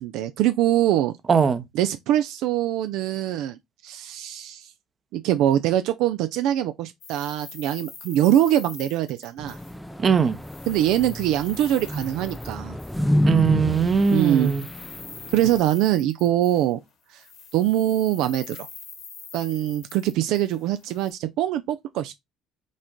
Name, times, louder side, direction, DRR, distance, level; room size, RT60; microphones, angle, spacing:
voice 1, 0.0-1.1 1.7-4.7 5.1-9.6 10.7-12.8 14.1-14.5 15.3-16.8 17.1-17.2 17.5-18.7 19.3-22.1, right 12 dB, 75° right, 0.4 m, -23 dB
voice 2, 1.3-1.6 10.0-10.4 13.2-14.6, right 6 dB, 40° right, 0.8 m, -20 dB
sound 1, 7.0-10.0 10.3-13.1 13.6-16.9 17.2-21.1, left 5 dB, 60° left, 1.9 m, -44 dB
sound 2, 9.4-15.6, left 1 dB, ahead, 0.5 m, -29 dB
5.3 x 2.5 x 3.6 m
supercardioid pair, 75°, 0 cm